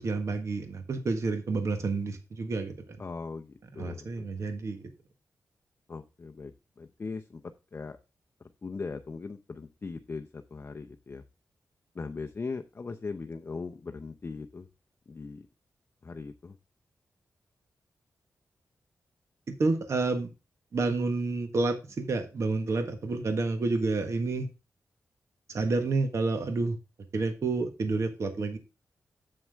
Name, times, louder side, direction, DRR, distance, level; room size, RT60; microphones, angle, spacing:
voice 1, 0.0-2.7 3.8-4.9 19.5-20.3 20.7-24.5 25.5-26.8 27.1-28.6, right 3 dB, 55° right, 6 dB, 1.5 m, -29 dB
voice 2, 3.0-4.3 5.9-7.4 7.7-8.0 8.6-11.2 11.9-14.7 15.1-15.5 16.0-16.6, left 4 dB, 35° left, 6 dB, 0.6 m, -39 dB
7.8 x 7.5 x 3.5 m, 0.28 s
wide cardioid pair, 115°, 6 cm